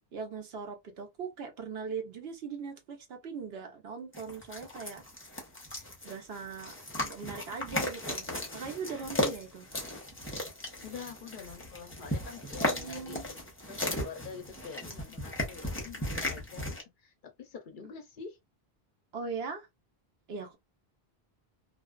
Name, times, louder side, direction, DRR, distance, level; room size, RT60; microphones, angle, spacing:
voice 1, 0.1-5.0 6.0-6.7 7.0-9.7 12.5-13.3 19.1-19.7 20.3-20.6, right 5 dB, 75° right, 1.0 m, -40 dB
sound 1, 4.1-16.8, left 1 dB, 15° left, 0.7 m, -36 dB
voice 2, 10.8-16.7 17.0-18.4, left 5 dB, 60° left, 0.7 m, -46 dB
2.5 x 2.3 x 2.2 m
omnidirectional pair, 1.0 m